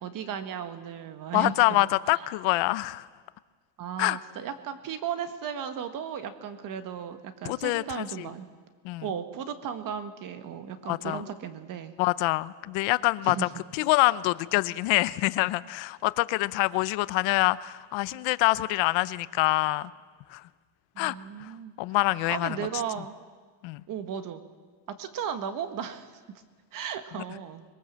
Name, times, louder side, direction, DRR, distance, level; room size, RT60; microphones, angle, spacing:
voice 1, 0.0-1.9 3.8-8.5 9.0-11.9 13.2-13.4 20.9-21.7 22.3-23.1 23.9-24.4 24.9-26.4 26.7-27.6, right 8 dB, 40° right, 9 dB, 1.7 m, -35 dB
voice 2, 1.3-3.1 4.0-4.2 7.4-8.3 8.8-9.1 10.9-11.2 12.0-19.9 20.3-20.4 21.0-21.5 21.8-22.7 23.6-23.8 27.1-27.2, left 20 dB, 70° left, 16 dB, 0.9 m, -26 dB
25.0 x 22.0 x 7.6 m, 1.5 s
cardioid pair, 165°, 47 cm